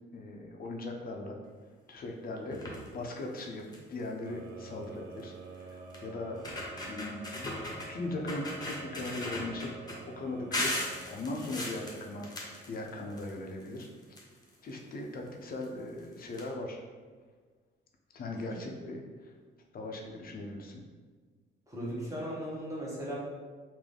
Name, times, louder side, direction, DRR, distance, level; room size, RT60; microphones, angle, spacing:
voice 1, 0.1-1.4 1.9-6.4 6.9-7.5 7.9-9.7 10.2-10.7 11.1-12.3 12.7-13.9 14.6-16.8 18.1-19.0 19.7-20.8, left 2 dB, 50° left, 1 dB, 0.6 m, -39 dB
sound 1, 2.5-2.9 3.4-3.5 3.7-4.0 5.2-5.3 5.9-6.0 6.3-7.9 8.3-10.0 10.5-13.3 13.6-14.7 15.6-15.7 16.0-16.1 16.3-16.4, left 1 dB, 20° left, 1.0 m, -37 dB
sound 2, 4.3-13.2, right 4 dB, 55° right, 0.6 m, -49 dB
voice 2, 21.7-23.2, equal, 15° right, -6 dB, 1.3 m, -37 dB
3.7 x 2.6 x 3.4 m, 1.5 s
cardioid pair, 90°, 20 cm